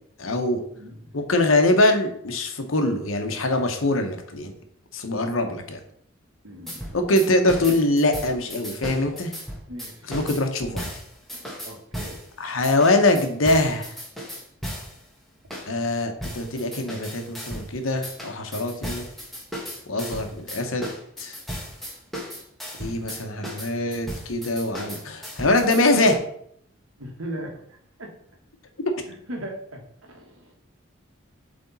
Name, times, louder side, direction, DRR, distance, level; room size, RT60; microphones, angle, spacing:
voice 1, 0.2-0.6 1.1-4.5 4.9-5.8 6.9-9.3 10.1-10.9 12.4-13.9 15.7-19.1 19.9-20.9 21.2-21.4 22.8-26.2, left 2 dB, 85° left, 6 dB, 1.0 m, -23 dB
voice 2, 0.8-1.2 6.4-7.0 9.7-10.2 11.3-12.2 27.0-28.1 29.1-30.5, right 1 dB, 85° right, 1 dB, 1.5 m, -39 dB
sound 1, 6.7-12.3 12.6-15.0 15.5-15.7 16.2-17.7 18.0-26.2, equal, ahead, 1.3 m, -35 dB
7.8 x 3.5 x 4.1 m, 0.67 s
head